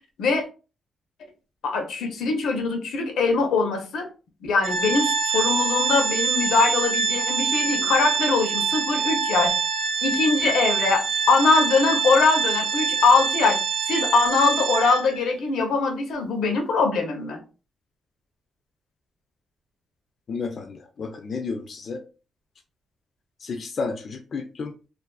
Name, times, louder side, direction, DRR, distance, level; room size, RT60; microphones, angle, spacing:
voice 1, 1.6-4.1 4.4-9.6 10.0-13.6 13.9-17.4, left 4 dB, 90° left, 4 dB, 0.6 m, -22 dB
Organ, 4.6-15.3, right 5 dB, 70° right, 0.3 m, -25 dB
voice 2, 20.3-22.0 23.4-24.7, left 4 dB, 45° left, 5 dB, 0.3 m, -32 dB
2.4 x 2.3 x 2.2 m, 0.34 s
cardioid pair, 140°, 0 cm